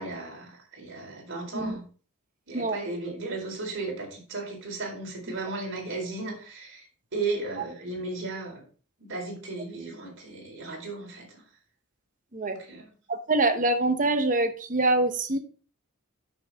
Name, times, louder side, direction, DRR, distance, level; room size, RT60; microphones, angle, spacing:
voice 1, 0.0-1.8 2.5-6.8 7.1-8.6 9.0-11.3 12.5-12.8, right 3 dB, 55° right, -1 dB, 4.3 m, -35 dB
voice 2, 13.1-15.4, right 2 dB, 35° right, 7 dB, 1.1 m, -25 dB
11.0 x 6.7 x 3.6 m, 0.38 s
head